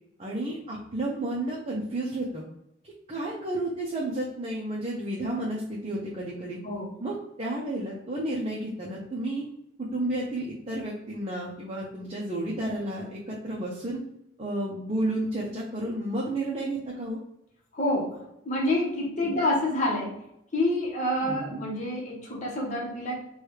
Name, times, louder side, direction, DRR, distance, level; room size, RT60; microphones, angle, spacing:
voice 1, 0.2-2.4 3.1-6.6 7.0-9.5 9.8-14.0 14.4-17.2 19.2-19.3 21.2-21.7, right 1 dB, 30° right, -4 dB, 0.6 m, -32 dB
voice 2, 17.7-18.2 18.4-20.1 20.5-23.3, left 1 dB, 35° left, -2 dB, 1.0 m, -27 dB
4.7 x 2.3 x 3.2 m, 0.79 s
head